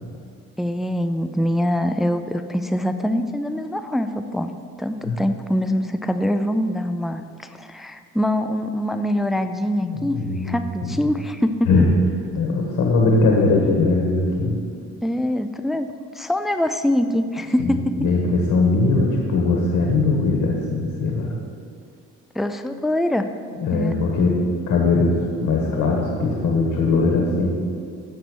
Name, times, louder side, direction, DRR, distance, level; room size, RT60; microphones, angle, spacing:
voice 1, 0.6-4.5 4.8-11.7 15.0-15.9 16.1-17.9 22.4-23.3 23.7-24.0, left 1 dB, ahead, 8 dB, 0.4 m, -24 dB
voice 2, 9.8-11.0 11.7-11.9 12.3-14.6 17.6-21.3 23.6-24.4 24.7-27.5, left 3 dB, 80° left, 0 dB, 1.3 m, -20 dB
7.4 x 6.8 x 6.1 m, 2.2 s
cardioid pair, 90°, 30 cm